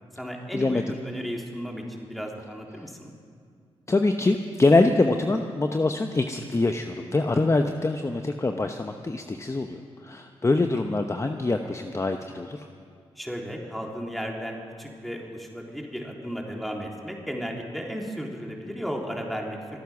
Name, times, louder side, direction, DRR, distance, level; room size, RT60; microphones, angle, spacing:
voice 1, 0.1-3.1 13.1-19.8, equal, ahead, 0 dB, 3.3 m, -34 dB
voice 2, 3.9-12.7, left 2 dB, 25° left, 6 dB, 0.8 m, -24 dB
25.5 x 9.3 x 6.0 m, 2.3 s
supercardioid pair, 50°, 11 cm